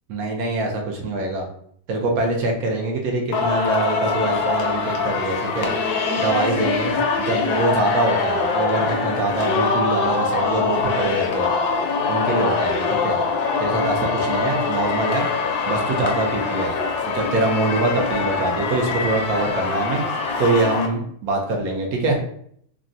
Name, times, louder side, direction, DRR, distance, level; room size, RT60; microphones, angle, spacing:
voice 1, 0.1-1.5 1.9-5.7 6.2-11.5 12.1-13.2 13.6-15.2 15.7-16.7 17.1-20.0 20.4-22.2, right 2 dB, 65° right, 1 dB, 1.0 m, -24 dB
Singing, 3.3-20.9, left 4 dB, 70° left, 1.0 m, -23 dB
3.6 x 2.1 x 2.5 m, 0.67 s
omnidirectional pair, 1.9 m